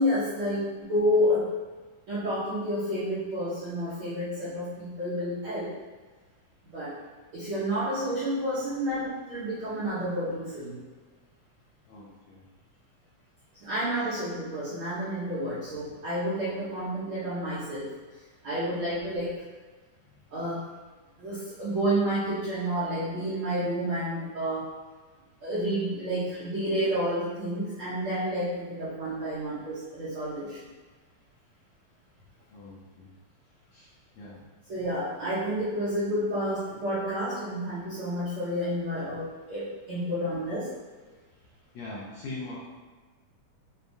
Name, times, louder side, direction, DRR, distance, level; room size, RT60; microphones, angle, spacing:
voice 1, 0.0-1.6 2.1-5.7 6.6-7.0 7.3-10.8 13.6-17.9 18.4-19.4 20.3-20.7 21.2-24.7 25.4-30.6 34.7-40.7, equal, 85° right, -11 dB, 1.1 m, -30 dB
voice 2, 11.9-12.4 20.1-20.2 32.5-33.1 33.7-33.9 34.1-34.4 41.7-42.6, left 2 dB, 80° left, -6 dB, 1.6 m, -42 dB
6.3 x 2.2 x 2.6 m, 1.4 s
omnidirectional pair, 3.7 m